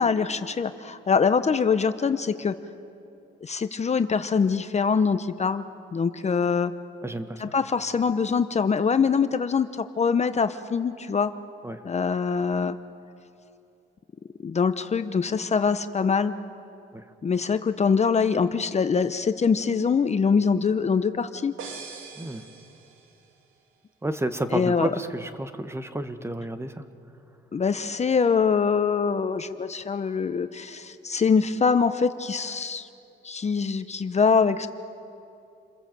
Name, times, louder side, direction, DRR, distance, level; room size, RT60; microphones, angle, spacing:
voice 1, 0.0-2.5 3.4-5.7 5.9-6.7 7.4-11.3 11.8-12.8 14.4-16.3 17.2-21.5 24.5-24.9 27.5-32.9 33.2-34.7, left 5 dB, 35° left, 10 dB, 0.9 m, -24 dB
voice 2, 7.0-7.5 11.6-11.8 16.9-17.0 22.2-22.5 24.0-26.8, right 1 dB, 15° right, 9 dB, 1.3 m, -31 dB
sound 1, 21.6-23.4, right 5 dB, 85° right, 2.6 m, -42 dB
29.0 x 21.5 x 7.7 m, 2.7 s
cardioid pair, 90°, 20 cm